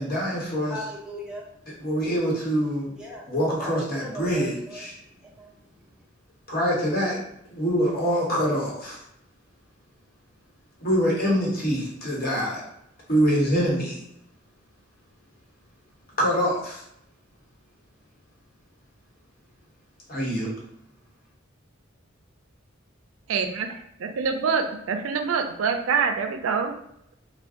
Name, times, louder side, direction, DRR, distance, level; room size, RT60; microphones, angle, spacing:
voice 1, 0.0-0.8 1.8-2.9 3.3-4.9 6.5-7.2 7.5-9.0 10.8-12.6 13.1-14.0 16.2-16.8 20.1-20.5, equal, 50° left, -4 dB, 1.0 m, -25 dB
voice 2, 0.6-1.5 3.0-3.3 3.6-4.9 5.2-5.8, equal, 5° right, -3 dB, 0.5 m, -39 dB
voice 3, 23.3-26.8, right 5 dB, 85° right, 6 dB, 0.4 m, -26 dB
2.5 x 2.2 x 3.5 m, 0.75 s
head